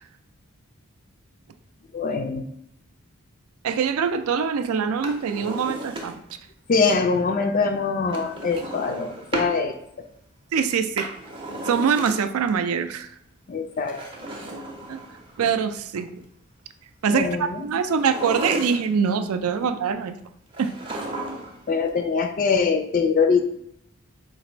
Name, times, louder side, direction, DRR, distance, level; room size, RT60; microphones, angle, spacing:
voice 1, 1.9-2.4 6.7-9.8 13.5-14.0 17.1-17.7 21.7-23.4, left 4 dB, 40° left, 6 dB, 0.3 m, -23 dB
voice 2, 3.6-6.2 10.5-11.1 11.7-13.1 14.9-15.0 15.4-16.2 17.0-20.2 20.6-20.7, right 6 dB, 80° right, 10 dB, 0.4 m, -24 dB
Drawer open or close, 4.9-6.4 8.1-9.6 10.7-12.5 13.8-15.4 17.9-19.1 20.5-21.7 21.9-22.0, right 1 dB, 25° right, 0.5 m, -34 dB
4.0 x 2.5 x 4.3 m, 0.73 s
head